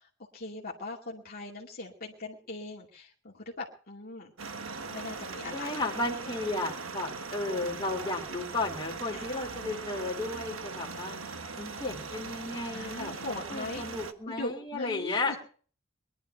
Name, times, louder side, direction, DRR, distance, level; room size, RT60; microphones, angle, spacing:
voice 1, 0.0-4.3 4.9-5.7 9.1-9.3 12.7-13.9 14.3-15.4, left 2 dB, 45° left, -3 dB, 2.4 m, -40 dB
sound 1, 4.4-14.1, right 4 dB, 70° right, 1.4 m, -40 dB
voice 2, 5.5-11.2 11.6-15.4, left 2 dB, 20° left, 0 dB, 3.2 m, -34 dB
22.0 x 11.5 x 4.5 m, 0.42 s
head